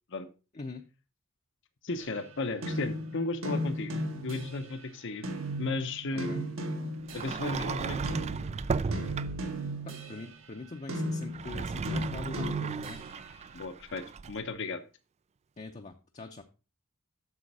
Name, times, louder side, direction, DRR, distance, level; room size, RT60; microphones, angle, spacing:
voice 1, 0.5-0.8 6.1-6.4 9.8-13.0 15.6-16.4, left 3 dB, 35° left, 4 dB, 0.7 m, -43 dB
voice 2, 1.8-5.3 5.6-6.5 7.1-8.1 13.5-14.8, left 2 dB, 65° left, 9 dB, 0.9 m, -35 dB
sound 1, 2.0-4.8 5.2-7.6 8.0-13.3, equal, 75° right, 2.0 m, -36 dB
Sliding door, 7.1-9.6 11.2-14.4, right 5 dB, 30° right, 0.3 m, -35 dB
8.4 x 6.4 x 4.7 m, 0.32 s
head